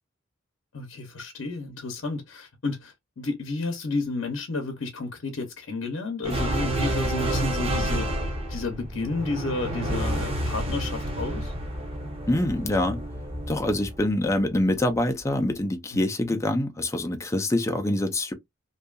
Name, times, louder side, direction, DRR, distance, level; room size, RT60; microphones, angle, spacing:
voice 1, 0.7-8.1 8.5-11.5 15.9-16.4, left 3 dB, 70° left, 0.7 m, -32 dB
sound 1, 6.2-14.8, right 1 dB, 30° right, 0.8 m, -29 dB
voice 2, 12.3-13.0 13.5-18.3, left 1 dB, 15° left, 0.4 m, -25 dB
2.7 x 2.3 x 2.3 m
head